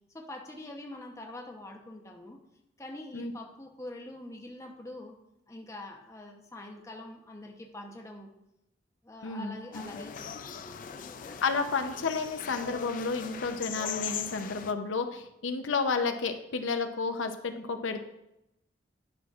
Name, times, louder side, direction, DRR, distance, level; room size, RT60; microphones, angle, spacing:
voice 1, 0.1-2.4 2.8-5.2 5.5-8.3 9.0-11.4, left 1 dB, 15° left, 1 dB, 0.7 m, -45 dB
voice 2, 9.2-9.6 11.4-18.0, left 4 dB, 85° left, 7 dB, 0.6 m, -31 dB
sound 1, 9.7-14.7, left 8 dB, 45° left, 0.3 m, -39 dB
10.5 x 6.0 x 2.4 m, 0.85 s
head